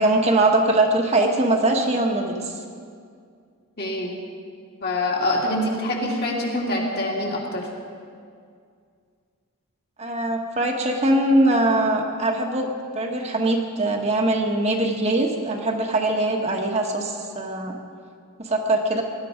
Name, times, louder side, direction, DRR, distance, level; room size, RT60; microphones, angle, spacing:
voice 1, 0.0-2.5 10.0-17.8 18.4-19.0, right 2 dB, 30° right, 1 dB, 1.3 m, -22 dB
voice 2, 3.8-4.2 4.8-7.7, left 1 dB, 45° left, -2 dB, 2.7 m, -25 dB
20.0 x 12.0 x 5.1 m, 2.2 s
head